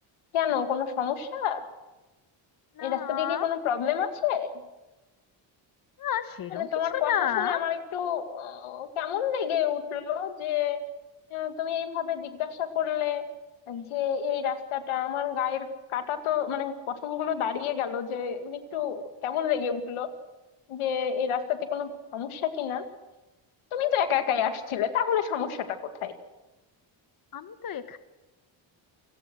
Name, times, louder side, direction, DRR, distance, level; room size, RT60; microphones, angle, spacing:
voice 1, 0.3-1.6 2.8-4.5 6.5-7.1 7.4-10.8 11.3-13.2 13.7-15.7 15.9-20.1 20.7-22.8 23.7-26.1, left 9 dB, 90° left, 7 dB, 2.2 m, -29 dB
voice 2, 2.7-3.5 6.0-7.6 27.3-28.0, left 9 dB, 45° left, 10 dB, 1.2 m, -31 dB
29.0 x 18.0 x 6.2 m, 1.1 s
cardioid pair, 120°, 48 cm